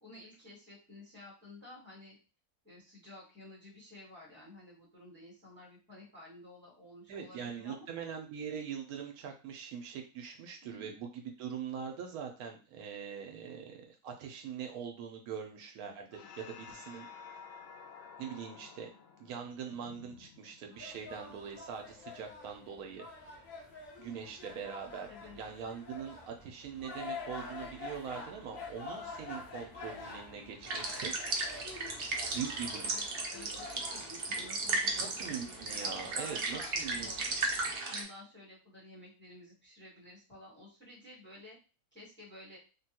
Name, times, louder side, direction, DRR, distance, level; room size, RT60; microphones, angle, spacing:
voice 1, 0.0-2.1 2.6-7.9 10.6-10.9 25.1-25.4 32.7-37.2 37.8-41.6 41.9-42.6, left 2 dB, 10° left, -4 dB, 1.0 m, -52 dB
voice 2, 7.1-17.1 18.2-18.9 19.2-23.1 24.0-31.4 32.3-33.1 35.0-37.4, right 7 dB, 75° right, 3 dB, 1.0 m, -42 dB
sound 1, 16.1-20.9, left 6 dB, 85° left, 0.5 m, -52 dB
sound 2, 20.7-37.8, left 3 dB, 60° left, 1.2 m, -47 dB
sound 3, 30.6-38.0, right 3 dB, 55° right, 0.7 m, -35 dB
3.3 x 2.2 x 2.8 m, 0.34 s
omnidirectional pair, 1.6 m